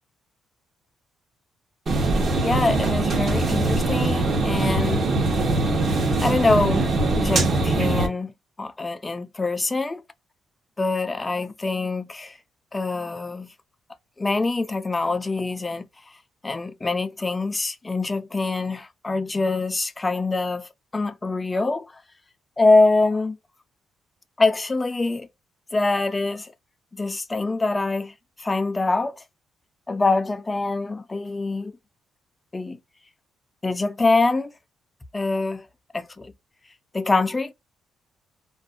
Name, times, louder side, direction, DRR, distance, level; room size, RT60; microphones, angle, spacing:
sound 1, 1.9-8.1, right 2 dB, 50° right, 0.9 m, -22 dB
voice 1, 2.4-5.1 6.2-6.8 7.2-8.3 8.6-10.0 10.8-12.3 12.7-13.5 14.2-15.9 16.4-22.0 22.6-23.4 24.4-25.3 25.7-26.5 26.9-28.1 28.4-29.2 29.9-31.8 32.5-32.8 33.6-34.5 35.1-35.7 35.9-36.3 36.9-37.5, left 3 dB, 20° left, 0.4 m, -24 dB
2.5 x 2.1 x 2.4 m
cardioid pair, 90°, 0 cm